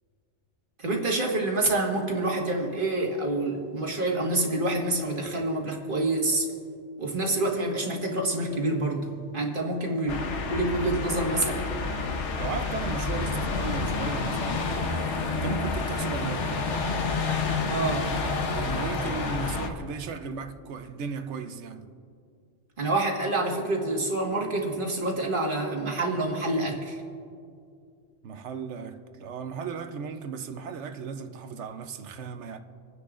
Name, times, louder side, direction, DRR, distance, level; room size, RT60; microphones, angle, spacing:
voice 1, 0.8-6.5 7.0-10.2 10.5-11.7 17.7-18.1 22.8-27.0, right 2 dB, 45° right, 1.7 m, -27 dB
sound 1, 10.1-19.7, left 4 dB, 70° left, 1.2 m, -29 dB
voice 2, 12.4-14.7 15.3-16.5 18.5-21.9 28.2-32.6, right 5 dB, 70° right, 1.0 m, -36 dB
27.5 x 10.0 x 2.5 m
omnidirectional pair, 1.3 m